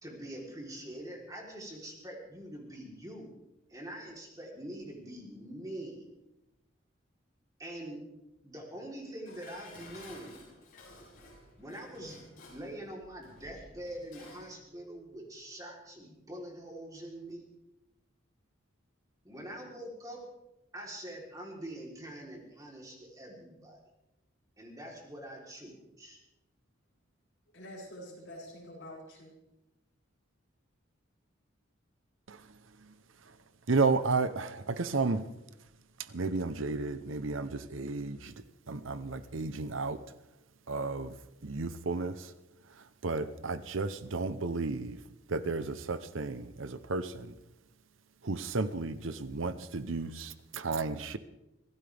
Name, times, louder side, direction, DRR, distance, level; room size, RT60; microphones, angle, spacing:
voice 1, 0.0-3.3 3.7-6.1 7.6-8.0 8.4-10.5 11.6-12.2 12.5-17.4 19.2-20.2 20.7-23.8 24.6-26.2, right 1 dB, 20° right, -1 dB, 3.6 m, -44 dB
Dishes pots and pans, 9.2-14.5 14.9-15.0, left 2 dB, 45° left, 7.5 m, -53 dB
voice 2, 27.5-29.4, equal, 60° left, -4 dB, 8.0 m, -46 dB
voice 3, 33.7-35.2 36.1-38.3 38.7-40.0 40.7-41.1 41.4-42.3 43.0-45.0 45.3-47.3 48.2-51.2, right 3 dB, 75° right, 12 dB, 0.9 m, -32 dB
25.0 x 16.5 x 3.5 m, 0.94 s
head